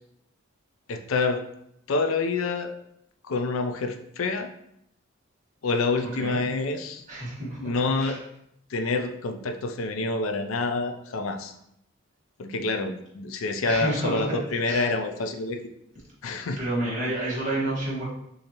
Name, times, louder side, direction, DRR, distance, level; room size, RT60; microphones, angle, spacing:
voice 1, 0.9-1.4 1.9-2.7 3.2-4.5 5.6-7.0 7.6-8.2 8.7-11.5 12.4-15.6 16.2-16.6, left 3 dB, 75° left, 6 dB, 0.5 m, -27 dB
voice 2, 7.1-7.7 8.0-8.2 13.6-14.2 14.6-14.9 16.6-18.0, right 1 dB, 35° right, -6 dB, 1.7 m, -29 dB
6.4 x 2.8 x 2.9 m, 0.76 s
head